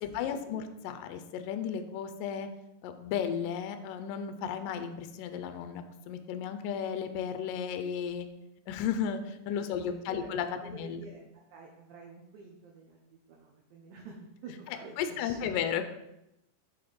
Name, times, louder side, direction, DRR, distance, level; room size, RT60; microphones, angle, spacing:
voice 1, 0.0-2.5 2.8-8.3 8.7-11.1 14.7-15.8, left 8 dB, 85° left, 9 dB, 2.0 m, -34 dB
voice 2, 10.6-14.2 14.4-15.7, right 4 dB, 80° right, -1 dB, 1.7 m, -49 dB
6.7 x 4.5 x 4.2 m, 0.87 s
omnidirectional pair, 4.5 m